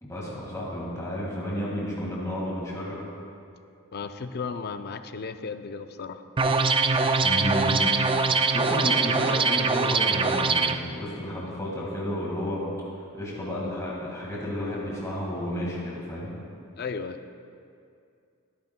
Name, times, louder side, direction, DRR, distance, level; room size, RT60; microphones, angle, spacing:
voice 1, 0.0-3.0 7.2-7.8 8.5-12.6 13.0-16.3, equal, 15° left, -6 dB, 1.8 m, -32 dB
voice 2, 3.9-6.2 16.8-17.2, left 5 dB, 45° left, 9 dB, 0.5 m, -35 dB
sound 1, 6.4-10.8, right 4 dB, 25° right, 0.3 m, -23 dB
24.0 x 9.4 x 2.2 m, 2.4 s
head